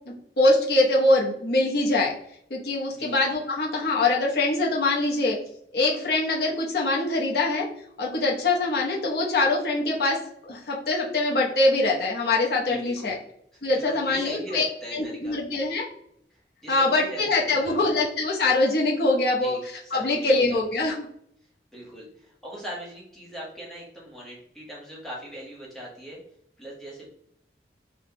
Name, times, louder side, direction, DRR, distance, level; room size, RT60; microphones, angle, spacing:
voice 1, 0.4-2.1 2.5-5.4 5.7-7.6 8.0-10.2 10.5-13.1 13.6-14.7 14.9-15.9 16.7-19.6 19.9-21.0, left 2 dB, 60° left, -2 dB, 0.7 m, -23 dB
voice 2, 12.6-13.2 13.5-15.4 16.3-17.2 17.5-17.8 19.4-20.6 21.7-26.2 26.6-27.0, equal, ahead, -5 dB, 0.8 m, -40 dB
3.4 x 2.1 x 2.8 m, 0.71 s
head